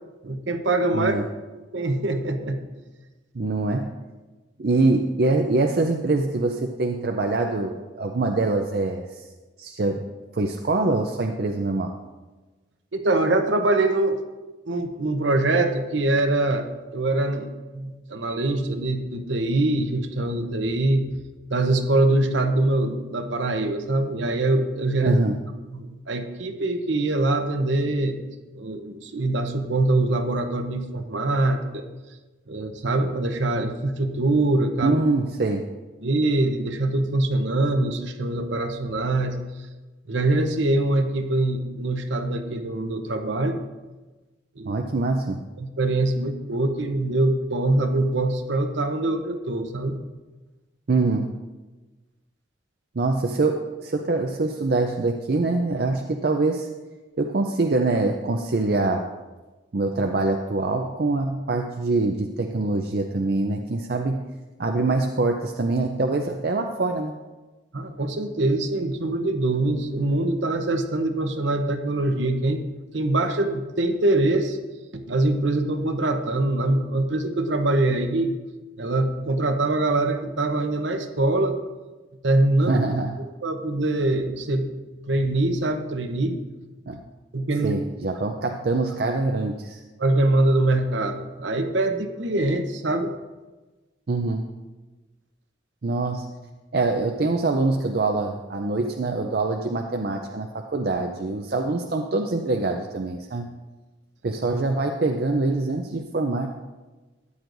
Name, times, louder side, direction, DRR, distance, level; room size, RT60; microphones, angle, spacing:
voice 1, 0.2-1.1 1.5-2.6 12.9-14.2 14.7-16.7 16.9-21.1 21.5-25.2 25.7-28.2 28.5-31.8 32.5-34.9 36.0-39.5 40.1-43.6 44.6-44.8 45.6-50.0 67.7-72.6 72.9-74.6 74.9-78.3 78.8-81.6 82.2-82.8 83.4-84.7 85.1-86.4 87.3-87.8 90.0-93.1, right 2 dB, 70° right, 6 dB, 0.9 m, -23 dB
voice 2, 0.9-1.2 3.3-3.9 4.6-9.2 9.6-10.0 10.3-11.9 25.0-25.4 34.8-35.7 44.7-45.4 50.9-51.3 53.0-56.7 57.2-59.0 59.7-64.3 64.6-67.1 82.7-83.2 86.9-87.0 87.6-89.8 94.1-94.5 95.8-96.3 96.7-103.5 104.2-106.5, right 3 dB, 50° right, 3 dB, 0.5 m, -24 dB
13.5 x 9.5 x 2.6 m, 1.2 s
head